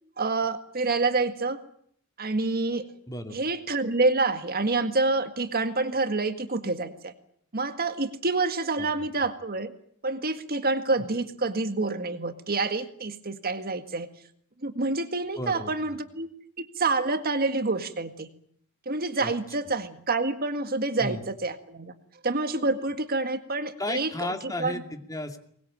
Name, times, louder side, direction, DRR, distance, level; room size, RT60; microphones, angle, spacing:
voice 1, 0.2-1.6 2.2-2.9 3.3-7.1 7.5-9.7 10.0-14.1 14.6-16.3 16.6-18.3 18.9-21.9 22.2-24.3 24.6-24.8, right 3 dB, 45° right, 9 dB, 1.8 m, -27 dB
voice 2, 3.1-3.4 8.8-9.1 15.4-16.0 19.2-19.3 21.0-21.2 23.8-25.4, left 1 dB, 15° left, 6 dB, 2.5 m, -34 dB
23.0 x 20.5 x 8.9 m, 0.65 s
head